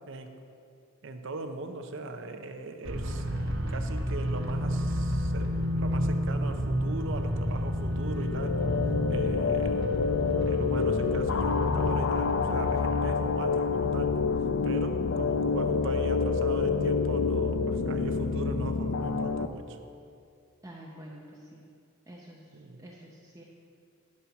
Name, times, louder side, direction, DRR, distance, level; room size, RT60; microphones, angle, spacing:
voice 1, 1.0-3.3 3.7-8.6 9.1-9.9 10.4-14.2 14.6-19.8 22.5-22.9, right 3 dB, 60° right, 7 dB, 0.6 m, -39 dB
sound 1, 2.8-13.2, equal, 75° right, 1.1 m, -31 dB
sound 2, 7.9-19.5, left 5 dB, 60° left, 0.4 m, -27 dB
voice 2, 20.6-21.6 22.1-23.4, right 1 dB, 15° right, -4 dB, 0.6 m, -48 dB
11.0 x 4.2 x 5.7 m, 2.4 s
head